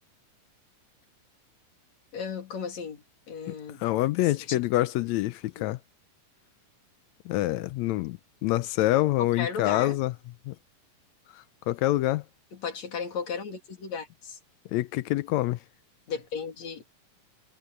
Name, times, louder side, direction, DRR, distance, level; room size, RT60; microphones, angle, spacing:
voice 1, 2.1-3.8 4.5-4.6 5.6-5.7 9.4-10.0 12.6-14.4 16.1-16.8, left 6 dB, 55° left, 3.9 m, -35 dB
voice 2, 3.8-5.8 7.2-10.1 10.5-10.6 11.7-12.2 14.7-15.6, left 16 dB, 80° left, 1.6 m, -26 dB
omnidirectional pair, 3.9 m